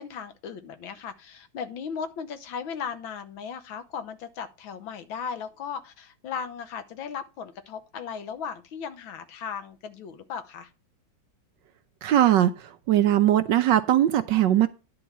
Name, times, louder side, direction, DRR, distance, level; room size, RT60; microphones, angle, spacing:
voice 1, 0.0-10.7, left 6 dB, 80° left, 1.8 m, -36 dB
voice 2, 12.0-12.5 12.9-14.7, right 12 dB, 75° right, 1.2 m, -20 dB
10.5 x 3.9 x 7.2 m
omnidirectional pair, 2.2 m